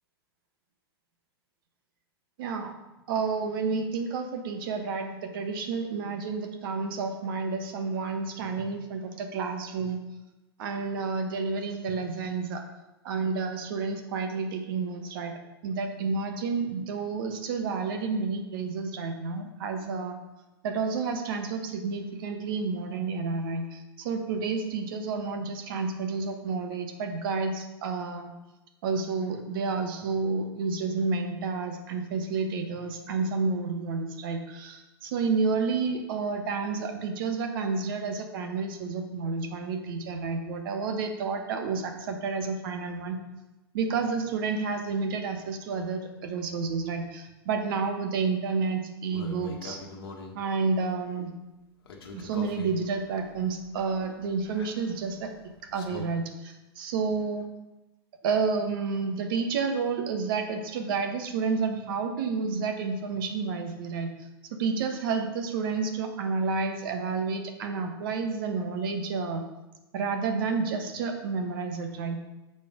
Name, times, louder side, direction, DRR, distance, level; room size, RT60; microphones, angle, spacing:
voice 1, 2.4-2.7 3.1-10.0 10.6-12.6 13.0-15.3 15.6-20.1 20.6-28.3 28.8-43.2 43.7-49.8 50.3-51.3 52.1-55.3 55.7-57.5 58.2-64.1 64.6-69.5 69.9-72.2, right 4 dB, 55° right, 5 dB, 1.2 m, -30 dB
sound 1, 49.1-50.4 51.9-56.1, left 3 dB, 65° left, 1.2 m, -44 dB
6.8 x 5.3 x 5.0 m, 1.0 s
figure-of-eight pair, 100°, 13 cm